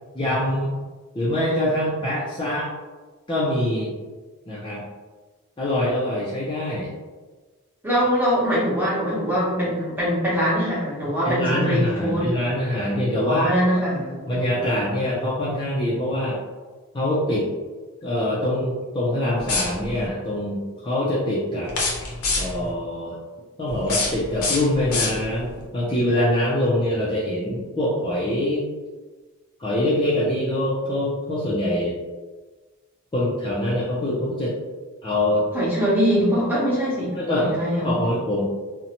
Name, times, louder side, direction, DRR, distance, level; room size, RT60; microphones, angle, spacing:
voice 1, 0.1-0.7 1.1-2.7 3.3-3.9 4.5-4.8 5.6-6.9 11.2-13.5 14.3-16.4 16.9-17.5 18.0-20.6 20.8-21.7 22.4-23.1 23.6-28.6 29.6-31.9 33.1-34.5 35.0-35.5 37.1-38.4, left 1 dB, 20° left, -8 dB, 0.4 m, -24 dB
voice 2, 7.8-12.3 13.2-14.4 35.5-37.9, equal, 10° right, -8 dB, 0.8 m, -23 dB
sound 1, 19.4-20.1 21.7-22.7 23.7-25.5, left 3 dB, 80° left, 0.7 m, -27 dB
2.6 x 2.1 x 2.8 m, 1.3 s
head